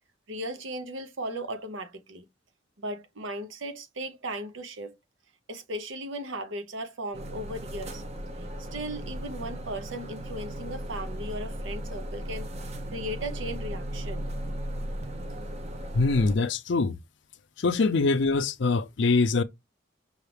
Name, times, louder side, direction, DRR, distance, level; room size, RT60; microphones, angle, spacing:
voice 1, 0.3-2.2 2.8-5.0 5.5-8.0 8.6-12.5 12.9-14.3, right 1 dB, 75° right, 0.8 m, -36 dB
sound 1, 7.1-16.4, right 1 dB, 35° right, 0.7 m, -36 dB
voice 2, 15.9-17.0 17.6-19.4, left 3 dB, 65° left, 0.5 m, -23 dB
5.6 x 2.4 x 3.3 m
head